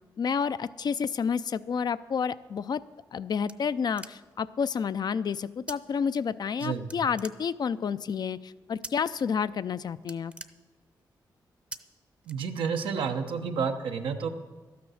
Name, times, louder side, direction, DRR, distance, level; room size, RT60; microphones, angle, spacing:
voice 1, 0.2-2.8 3.1-10.3, left 6 dB, 55° left, 14 dB, 0.4 m, -30 dB
sound 1, 2.8-4.5 5.7-5.8 6.1-6.6 6.9-7.9 8.8-9.2 9.6-9.7 10.0-11.1 11.7-11.8 12.2-12.9, right 2 dB, 15° right, 0.7 m, -44 dB
voice 2, 12.3-14.3, right 6 dB, 90° right, 5 dB, 1.0 m, -30 dB
12.5 x 9.4 x 6.4 m, 1.3 s
cardioid pair, 70°, 8 cm